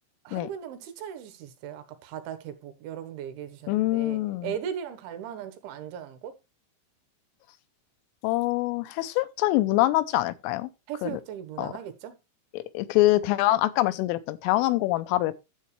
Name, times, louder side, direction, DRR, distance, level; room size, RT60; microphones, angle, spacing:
voice 1, 0.2-6.3 10.9-12.1, right 9 dB, 70° right, 3.3 m, -38 dB
voice 2, 3.7-4.5 8.2-10.7 11.0-11.2 11.6-11.7 12.5-15.4, left 17 dB, 80° left, 3.2 m, -25 dB
12.5 x 7.6 x 3.2 m
omnidirectional pair, 5.9 m